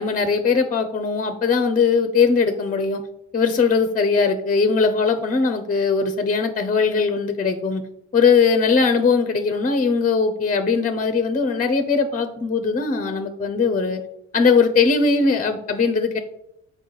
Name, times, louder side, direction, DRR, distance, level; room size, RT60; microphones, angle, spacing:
voice 1, 0.0-3.0 3.3-7.8 8.1-14.0 14.3-16.2, left 5 dB, 25° left, 8 dB, 0.7 m, -20 dB
7.1 x 4.9 x 3.9 m, 0.78 s
cardioid pair, 90°, 30 cm